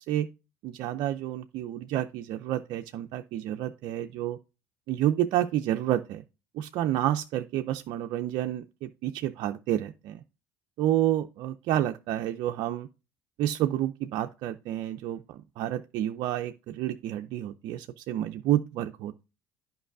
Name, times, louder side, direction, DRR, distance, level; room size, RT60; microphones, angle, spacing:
voice 1, 0.6-4.4 4.9-6.2 6.5-10.2 10.8-12.9 13.4-19.2, right 12 dB, 65° right, 0.4 m, -29 dB
11.0 x 5.3 x 2.5 m
hypercardioid pair, 60°, 9 cm